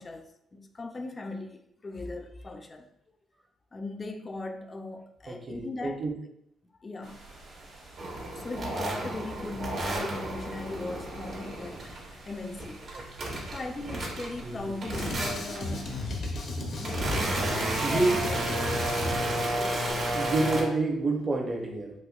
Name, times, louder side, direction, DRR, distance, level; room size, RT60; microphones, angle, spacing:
voice 1, 0.0-2.9 3.7-6.0 6.8-7.2 8.2-11.9 12.3-12.9 13.5-16.2 16.8-18.7, left 2 dB, 30° left, 0.4 m, -39 dB
voice 2, 5.3-6.1 13.0-13.5 14.4-14.7 17.8-18.2 20.1-21.9, right 3 dB, 35° right, 0.8 m, -29 dB
sound 1, 7.0-16.1, right 2 dB, 80° right, 1.4 m, -49 dB
sound 2, 8.0-12.1 12.4-14.5 14.8-15.7 16.3-20.6, right 1 dB, 60° right, 1.1 m, -32 dB
Drum kit, 14.9-19.9, left 2 dB, 65° left, 0.7 m, -35 dB
4.1 x 2.7 x 2.4 m
cardioid pair, 90°, 0 cm